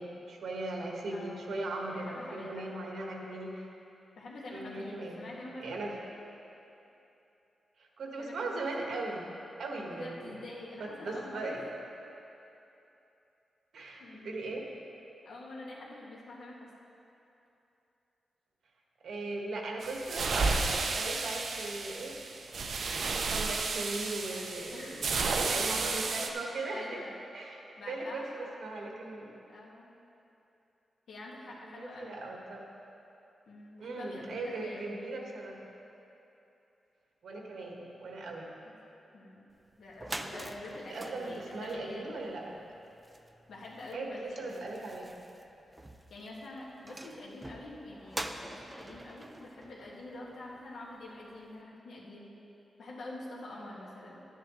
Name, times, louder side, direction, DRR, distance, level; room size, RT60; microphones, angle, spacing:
voice 1, 0.0-3.7 4.5-5.3 5.6-6.0 7.8-9.3 9.6-10.4 10.8-11.6 13.7-14.7 19.0-22.2 23.2-27.0 27.3-29.3 31.6-32.6 33.8-35.6 37.2-38.5 40.9-42.6 43.9-44.1 44.4-45.2, right 2 dB, 75° right, -1 dB, 1.5 m, -38 dB
voice 2, 1.1-1.5 1.9-2.7 4.2-5.8 8.2-8.5 8.8-9.1 9.9-11.6 14.0-14.3 15.2-16.7 24.3-24.4 24.7-25.4 26.7-27.2 27.8-28.5 29.5-29.9 31.1-32.1 33.5-35.1 39.1-39.5 39.8-42.4 43.5-44.7 46.1-52.3 52.8-54.2, left 2 dB, 80° left, -4 dB, 1.8 m, -46 dB
sound 1, 19.8-26.3, right 4 dB, 55° right, 0.7 m, -32 dB
sound 2, 39.6-39.7 39.9-50.7, right 1 dB, 10° right, 0.4 m, -45 dB
12.5 x 10.0 x 3.1 m, 2.9 s
wide cardioid pair, 150°, 0 cm